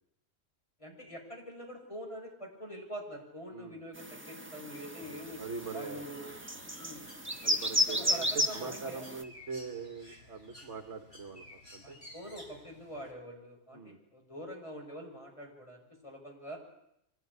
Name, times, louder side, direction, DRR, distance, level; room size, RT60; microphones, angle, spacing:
voice 1, 0.8-5.4 5.7-6.2 6.8-7.1 7.8-9.1 11.8-16.6, equal, 25° left, 0 dB, 6.3 m, -45 dB
sound 1, 4.0-9.2, equal, 10° right, 1.4 m, -34 dB
Bird, 5.0-13.1, left 1 dB, 50° left, 4.9 m, -54 dB
voice 2, 5.0-6.0 7.4-12.0 13.7-14.0, right 5 dB, 60° right, 6 dB, 2.0 m, -42 dB
24.5 x 18.5 x 9.8 m, 0.79 s
omnidirectional pair, 1.3 m